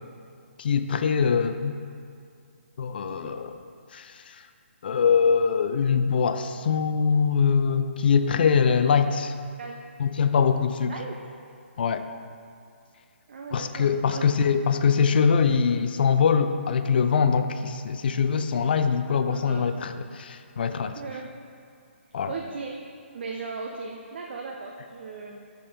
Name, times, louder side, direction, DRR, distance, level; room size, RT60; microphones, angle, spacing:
voice 1, 0.6-1.8 2.8-3.6 3.9-4.3 4.8-9.3 10.0-10.9 11.8-12.1 13.5-21.0 22.1-22.3, left 6 dB, 50° left, 9 dB, 0.3 m, -23 dB
voice 2, 13.3-14.3 19.3-19.9 21.0-21.3 22.3-22.8 23.1-25.4, right 4 dB, 55° right, 0 dB, 0.5 m, -37 dB
6.6 x 3.8 x 5.1 m, 2.3 s
hypercardioid pair, 155°, 7 cm